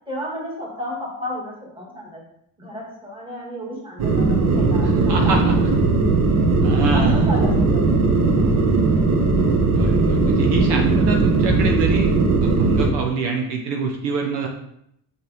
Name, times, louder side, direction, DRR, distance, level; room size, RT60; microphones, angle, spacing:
voice 1, 0.1-2.2 2.6-5.4 6.9-7.8 8.2-8.7, equal, 10° right, -3 dB, 2.2 m, -33 dB
sound 1, 4.0-12.9, right 3 dB, 40° right, 1.3 m, -18 dB
voice 2, 4.8-5.5 6.6-7.3 9.7-12.1 12.4-14.5, right 4 dB, 65° right, 2 dB, 1.2 m, -25 dB
6.6 x 6.4 x 3.6 m, 0.72 s
cardioid pair, 150°, 43 cm